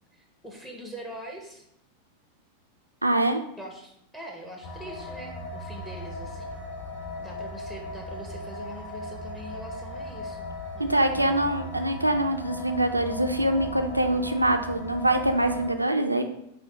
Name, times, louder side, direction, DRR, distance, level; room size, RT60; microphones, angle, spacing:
voice 1, 0.1-1.7 3.6-6.6 7.2-10.5 10.7-11.5, equal, 10° left, 0 dB, 0.6 m, -43 dB
voice 2, 3.0-3.4 10.8-16.2, right 1 dB, 85° right, 6 dB, 0.3 m, -24 dB
sound 1, 4.6-15.7, left 2 dB, 50° left, 1.6 m, -38 dB
5.0 x 2.1 x 3.8 m, 0.76 s
figure-of-eight pair, 90°, 0 cm